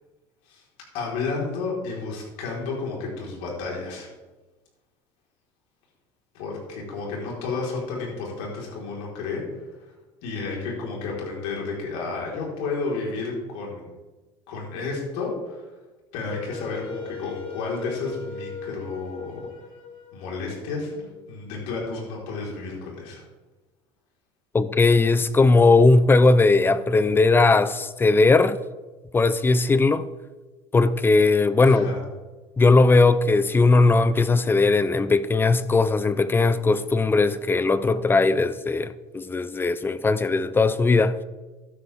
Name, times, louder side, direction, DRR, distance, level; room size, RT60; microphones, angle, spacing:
voice 1, 0.9-4.1 6.3-9.4 10.2-13.9 14.5-15.6 16.1-19.4 20.1-20.9 21.3-23.2 31.6-32.0, left 4 dB, 75° left, 4.3 m, -31 dB
Wind instrument woodwind instrument, 16.3-21.2, left 4 dB, 45° left, 2.5 m, -39 dB
voice 2, 24.5-28.6 29.1-30.1 30.7-31.9 32.6-41.2, left 3 dB, 20° left, 0.6 m, -19 dB
12.5 x 10.5 x 3.6 m
supercardioid pair, 105°, 12 cm